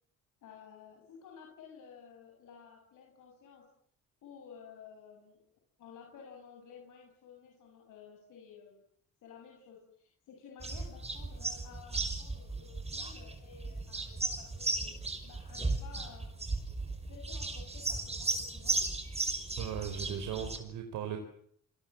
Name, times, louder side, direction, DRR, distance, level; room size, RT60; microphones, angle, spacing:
voice 1, 0.4-3.7 4.2-5.4 5.8-8.8 9.2-15.0 15.2-16.3 17.1-18.8, left 7 dB, 80° left, 1 dB, 7.5 m, -53 dB
sound 1, 10.6-20.6, right 3 dB, 20° right, 5.8 m, -35 dB
voice 2, 19.6-21.2, right 8 dB, 90° right, 5 dB, 4.3 m, -37 dB
28.0 x 22.0 x 7.6 m, 0.66 s
cardioid pair, 90°, 30 cm